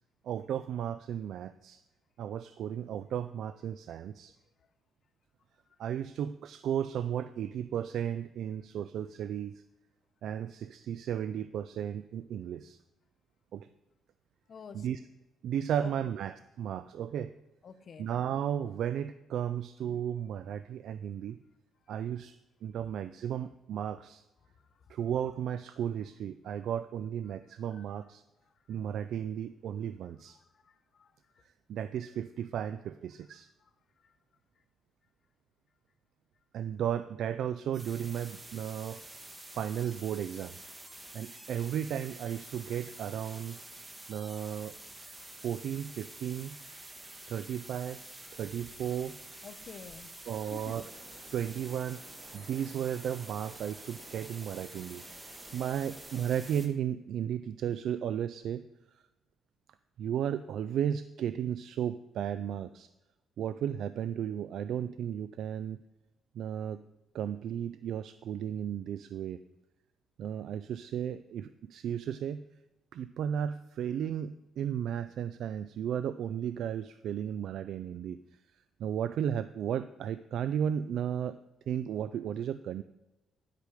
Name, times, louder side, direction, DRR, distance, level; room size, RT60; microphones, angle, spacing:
voice 1, 0.2-1.8 2.2-4.4 5.8-9.6 10.2-12.8 13.5-13.7 14.7-15.0 15.4-17.3 18.0-21.4 21.9-22.4 22.6-24.2 24.9-28.2 28.7-30.4 31.7-33.5 36.5-39.0 39.6-40.5 41.1-43.6 44.1-44.8 45.4-46.6 47.3-48.0 48.3-49.2 50.2-50.8 51.3-52.0 52.3-55.0 55.5-58.6 60.0-62.9 63.4-65.8 66.3-66.8 67.1-69.4 70.2-72.4 72.9-78.2 78.8-81.4 81.7-82.8, right 9 dB, 70° right, 13 dB, 0.3 m, -34 dB
voice 2, 14.5-14.9 15.8-15.9 17.6-18.1 26.5-26.6 27.7-27.8 30.6-31.1 34.0-34.1 49.4-50.1 50.5-50.7, left 6 dB, 45° left, 11 dB, 0.9 m, -48 dB
sound 1, 37.7-56.7, right 1 dB, 15° right, 1.4 m, -48 dB
sound 2, 44.1-56.8, left 3 dB, 20° left, 2.8 m, -66 dB
sound 3, 50.4-56.6, right 1 dB, 40° right, 3.9 m, -56 dB
11.0 x 8.3 x 5.0 m, 1.0 s
cardioid pair, 115°, 0 cm